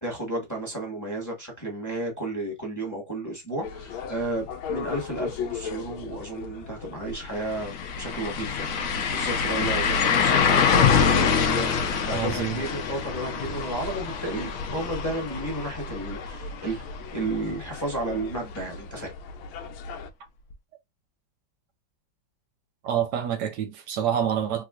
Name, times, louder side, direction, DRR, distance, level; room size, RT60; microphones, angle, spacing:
voice 1, 0.0-11.8 12.0-19.1, right 2 dB, 10° left, 1.1 m, -32 dB
sound 1, 3.6-20.1, left 5 dB, 90° left, 1.5 m, -39 dB
sound 2, 7.1-7.2 7.5-17.3 17.6-17.7 20.5-20.6, left 6 dB, 70° left, 0.8 m, -25 dB
voice 2, 12.1-12.6 22.8-24.6, right 9 dB, 70° right, 1.1 m, -27 dB
3.6 x 2.8 x 2.4 m
omnidirectional pair, 2.2 m